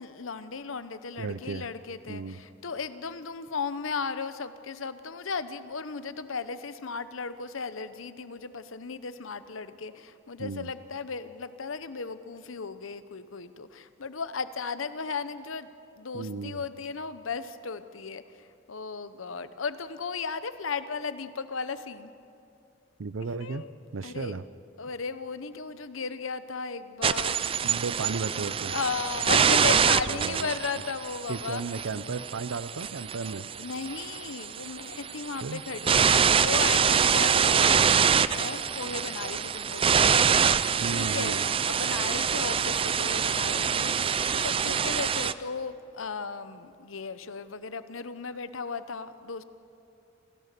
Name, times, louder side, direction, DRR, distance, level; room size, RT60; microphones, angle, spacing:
voice 1, 0.0-22.1 23.4-23.7 24.0-24.4 24.8-27.4 28.7-31.6 33.6-40.4 40.9-49.4, left 5 dB, 85° left, 12 dB, 0.9 m, -36 dB
voice 2, 1.2-1.6 2.1-2.4 10.4-10.7 16.1-16.6 23.0-23.6 23.9-24.4 27.6-28.7 30.1-30.6 31.3-33.5 35.4-35.6 40.8-41.4, right 4 dB, 85° right, 15 dB, 0.6 m, -34 dB
sound 1, 27.0-45.3, right 7 dB, 25° right, 0.4 m, -25 dB
28.0 x 16.5 x 6.8 m, 2.7 s
head